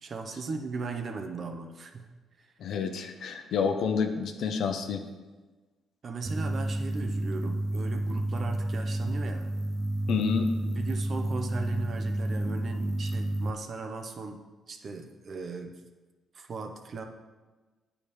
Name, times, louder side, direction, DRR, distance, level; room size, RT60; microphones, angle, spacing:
voice 1, 0.0-2.1 2.4-2.5 6.0-9.5 10.7-14.4 14.7-15.7 16.3-17.0, right 4 dB, 50° right, 5 dB, 1.0 m, -38 dB
voice 2, 2.6-5.0 10.1-10.5, left 6 dB, 70° left, 5 dB, 0.8 m, -28 dB
sound 1, 6.3-13.5, right 1 dB, 30° right, 0.5 m, -30 dB
9.2 x 4.9 x 5.1 m, 1.3 s
cardioid pair, 90°, 0 cm